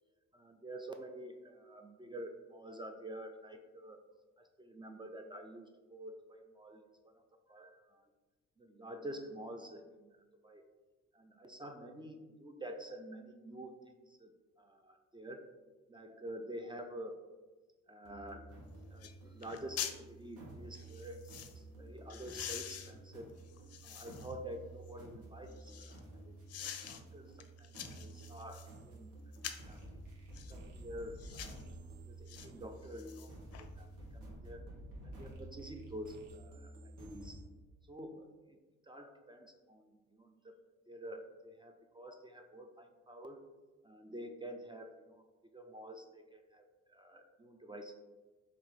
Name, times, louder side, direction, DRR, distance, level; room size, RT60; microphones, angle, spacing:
voice 1, 0.3-4.0 4.4-8.0 8.6-10.2 10.4-10.7 11.1-14.3 14.6-15.5 15.9-17.2 17.9-18.5 18.9-21.2 21.5-23.4 23.8-29.4 29.6-30.0 30.5-31.6 32.1-33.3 33.6-34.7 35.0-37.4 37.9-38.6 38.8-40.6 40.9-43.4 43.8-45.3 45.5-47.9, right 1 dB, 15° right, 5 dB, 0.3 m, -48 dB
sound 1, 18.0-37.4, right 2 dB, 80° right, 1.2 m, -51 dB
sound 2, 18.5-18.6 19.0-19.2 19.4-20.0 20.7-21.5 22.1-24.4 24.9-26.0 26.5-27.0 27.4-28.7 29.3-29.7 30.3-30.6 31.2-31.6 32.3-32.5 32.8-33.7 34.0-34.1, left 9 dB, 55° left, 0.5 m, -45 dB
3.7 x 2.8 x 4.6 m, 1.2 s
cardioid pair, 90°, 30 cm